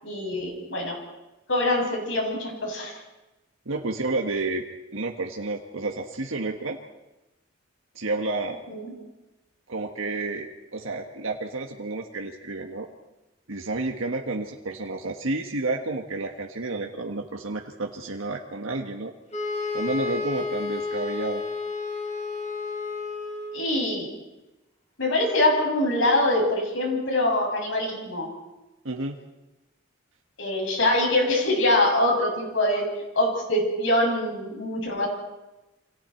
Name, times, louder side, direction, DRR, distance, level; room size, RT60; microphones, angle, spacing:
voice 1, 0.0-1.0 1.5-3.0 8.7-8.9 23.5-24.1 25.0-28.3 30.4-32.8 33.1-35.1, left 1 dB, 70° left, 0 dB, 7.4 m, -24 dB
voice 2, 3.6-4.6 4.9-6.8 7.9-8.6 9.7-12.9 13.5-19.1 19.7-21.4 28.8-29.2, right 2 dB, 90° right, 1 dB, 1.6 m, -30 dB
sound 1, 19.3-23.7, left 4 dB, 35° left, 5.4 m, -31 dB
29.0 x 25.5 x 4.5 m, 1.0 s
head